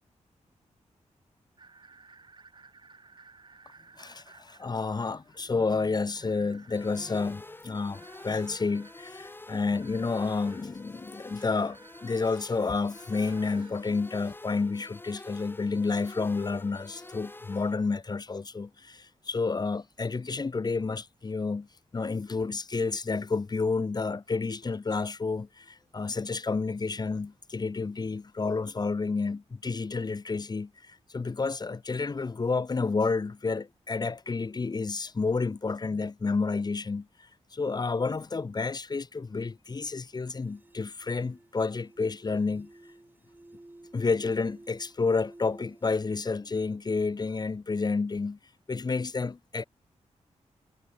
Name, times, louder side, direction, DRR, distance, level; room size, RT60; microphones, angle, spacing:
sound 1, 1.6-18.2, right 4 dB, 40° right, 6.2 m, -58 dB
voice 1, 4.0-21.7 21.9-37.1 37.5-42.7 43.9-48.4 48.7-49.6, left 4 dB, 35° left, 1.2 m, -30 dB
sound 2, 6.7-17.7, left 2 dB, 15° left, 1.3 m, -47 dB
sound 3, 40.2-45.9, right 2 dB, 15° right, 3.8 m, -54 dB
wide cardioid pair, 100°, 12 cm